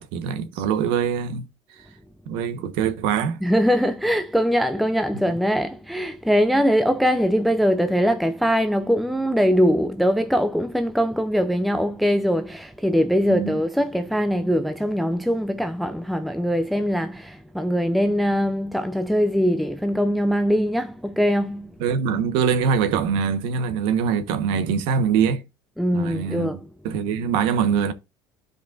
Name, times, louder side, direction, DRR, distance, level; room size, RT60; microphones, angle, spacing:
voice 1, 0.0-1.5 2.3-3.4 13.3-13.6 21.8-25.4 25.9-26.6 26.8-27.9, right 7 dB, 75° right, 1.2 m, -23 dB
voice 2, 3.4-21.8 25.8-26.7, equal, ahead, 0.4 m, -22 dB
13.0 x 5.2 x 2.5 m
cardioid pair, 150°, 9 cm